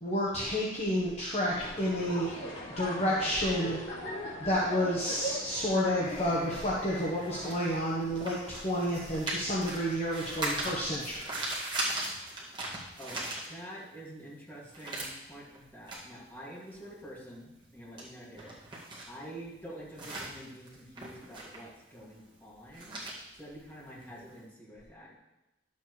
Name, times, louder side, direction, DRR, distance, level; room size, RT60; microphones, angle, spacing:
voice 1, 0.0-2.3 2.8-3.8 4.4-11.4, equal, 35° left, -5 dB, 1.1 m, -30 dB
sound 1, 1.4-7.6, equal, 85° left, 1.9 m, -40 dB
sound 2, 6.2-14.0 14.3-24.4, right 2 dB, 25° right, 1.8 m, -39 dB
voice 2, 13.5-18.5 19.1-23.0 23.4-25.2, equal, 10° left, -7 dB, 2.2 m, -47 dB
11.0 x 7.2 x 3.2 m, 0.99 s
head